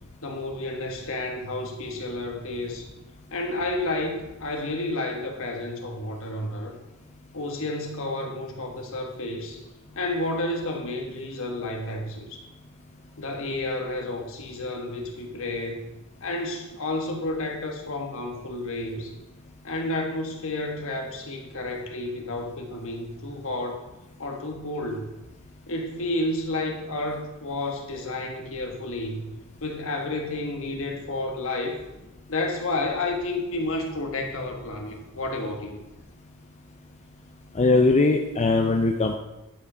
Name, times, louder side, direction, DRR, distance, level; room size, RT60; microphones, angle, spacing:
voice 1, 0.2-2.9 3.3-6.7 7.3-9.6 9.9-12.4 13.2-15.9 16.2-19.1 19.6-23.8 24.2-25.1 25.7-29.3 29.6-31.8 32.3-35.8, left 2 dB, 65° left, 3 dB, 1.4 m, -31 dB
voice 2, 37.5-39.2, left 3 dB, 30° left, 4 dB, 0.5 m, -20 dB
10.5 x 5.1 x 4.9 m, 1.0 s
head